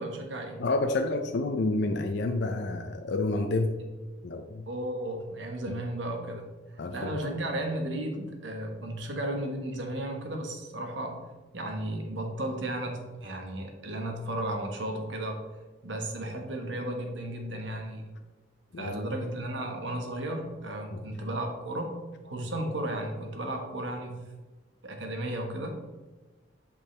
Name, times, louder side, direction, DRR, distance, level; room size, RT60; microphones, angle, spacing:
voice 1, 0.0-0.6 4.7-11.2 11.5-15.4 15.8-18.1 18.8-22.0 22.2-24.2 24.8-25.8, right 1 dB, 70° right, 3 dB, 1.3 m, -34 dB
voice 2, 0.6-3.8 4.2-4.7 5.7-5.8 6.8-7.2 18.7-18.9 20.9-21.0, left 2 dB, 60° left, 5 dB, 0.5 m, -29 dB
8.5 x 5.3 x 3.3 m, 1.2 s
head